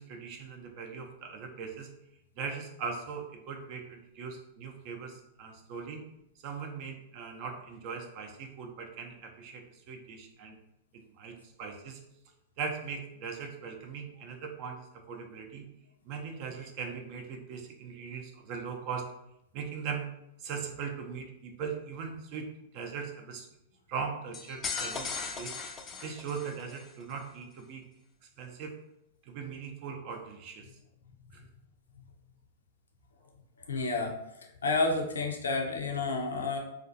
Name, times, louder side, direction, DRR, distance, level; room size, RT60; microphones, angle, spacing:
voice 1, 0.0-1.9 2.4-6.0 6.4-10.6 11.2-12.0 12.6-15.7 16.1-19.1 19.5-20.1 20.4-22.5 22.7-23.5 23.9-25.5 26.0-27.8 28.4-28.7 29.3-30.7 31.3-31.5, right 6 dB, 50° right, 3 dB, 0.4 m, -40 dB
sound 1, 24.3-26.9, left 5 dB, 25° left, 0.3 m, -37 dB
voice 2, 33.7-34.2 34.6-36.6, left 3 dB, 85° left, 1 dB, 0.5 m, -30 dB
2.4 x 2.2 x 2.6 m, 0.81 s
hypercardioid pair, 110°, 0 cm